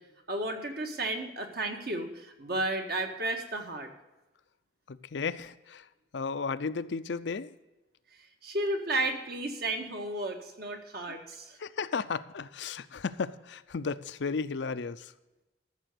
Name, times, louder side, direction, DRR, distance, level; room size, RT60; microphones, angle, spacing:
voice 1, 0.3-3.9 8.4-11.6, right 2 dB, 55° right, 4 dB, 1.7 m, -33 dB
voice 2, 4.9-5.9 6.1-7.5 11.1-11.2 11.6-15.1, left 5 dB, 65° left, 13 dB, 0.5 m, -34 dB
13.5 x 6.9 x 6.5 m, 1.0 s
head